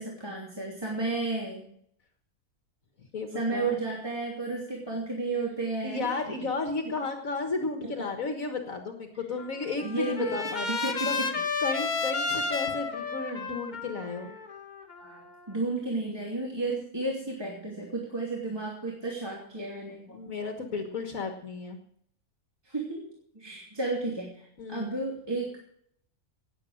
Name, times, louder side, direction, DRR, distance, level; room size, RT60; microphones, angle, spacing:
voice 1, 0.0-1.6 3.3-6.1 7.8-8.1 9.8-11.3 15.0-20.2 22.6-25.6, right 3 dB, 15° right, -3 dB, 3.0 m, -33 dB
voice 2, 3.1-3.8 5.8-14.3 20.1-21.8 24.6-25.0, left 4 dB, 60° left, 4 dB, 1.9 m, -34 dB
Trumpet, 9.4-15.5, left 4 dB, 30° left, 1.5 m, -32 dB
19.0 x 8.0 x 6.4 m, 0.67 s
omnidirectional pair, 1.6 m